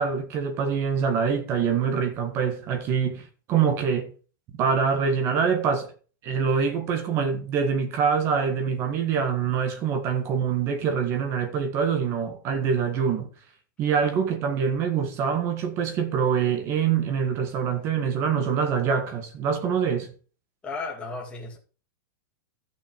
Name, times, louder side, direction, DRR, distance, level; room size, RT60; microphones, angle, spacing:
voice 1, 0.0-4.1 4.5-5.9 6.2-13.3 13.8-20.1, right 6 dB, 25° right, 1.6 m, -25 dB
voice 2, 20.6-21.6, left 3 dB, 10° left, 2.1 m, -34 dB
14.5 x 6.3 x 5.2 m
supercardioid pair, 175°, 11 cm